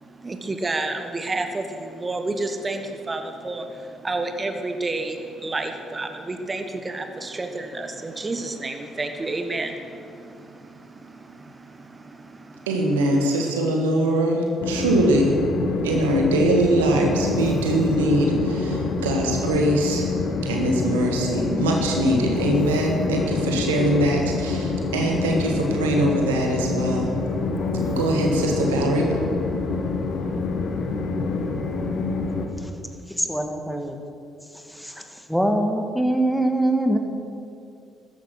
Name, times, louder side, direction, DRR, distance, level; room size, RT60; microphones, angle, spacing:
voice 1, 0.0-12.7 13.2-13.3, right 2 dB, 25° right, 6 dB, 1.3 m, -30 dB
voice 2, 12.7-15.4 15.8-20.1 20.4-27.1 27.8-29.1, right 1 dB, 80° right, 1 dB, 1.7 m, -22 dB
Train, 14.6-32.5, left 3 dB, 55° left, 1.5 m, -26 dB
voice 3, 33.1-34.0 34.7-35.0 35.3-37.0, right 1 dB, ahead, 4 dB, 1.8 m, -23 dB
14.0 x 10.5 x 6.4 m, 2.5 s
hypercardioid pair, 50°, 0 cm